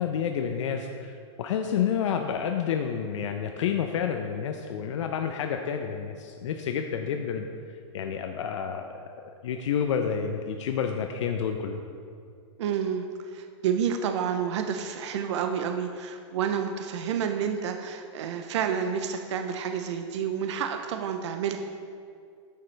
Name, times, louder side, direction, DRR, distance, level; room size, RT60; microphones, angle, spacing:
voice 1, 0.0-7.5 7.9-9.1 9.4-11.8, left 7 dB, 75° left, 5 dB, 0.5 m, -29 dB
voice 2, 12.6-21.6, right 7 dB, 70° right, 6 dB, 0.5 m, -29 dB
9.1 x 6.7 x 3.3 m, 2.4 s
supercardioid pair, 155°, 16 cm